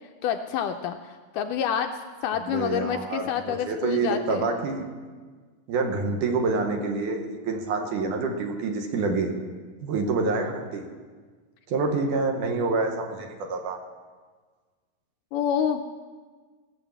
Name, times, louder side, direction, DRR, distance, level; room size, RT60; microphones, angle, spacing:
voice 1, 0.2-4.5 15.3-15.8, left 8 dB, 80° left, 6 dB, 1.9 m, -28 dB
voice 2, 2.5-4.9 5.7-9.3 9.8-10.8 11.7-13.8, right 3 dB, 70° right, 3 dB, 2.5 m, -27 dB
17.0 x 8.2 x 7.1 m, 1.5 s
omnidirectional pair, 4.2 m